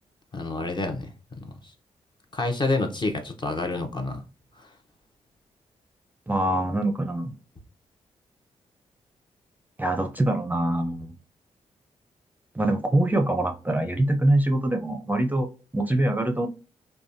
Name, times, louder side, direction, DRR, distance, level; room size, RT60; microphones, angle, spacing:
voice 1, 0.3-1.5 2.3-4.2 4.6-4.7, left 2 dB, 35° left, 0.8 m, -28 dB
voice 2, 6.3-7.3 9.8-11.1 12.5-16.5, right 1 dB, 15° right, 0.6 m, -24 dB
3.3 x 2.2 x 2.6 m
supercardioid pair, 45°, 13 cm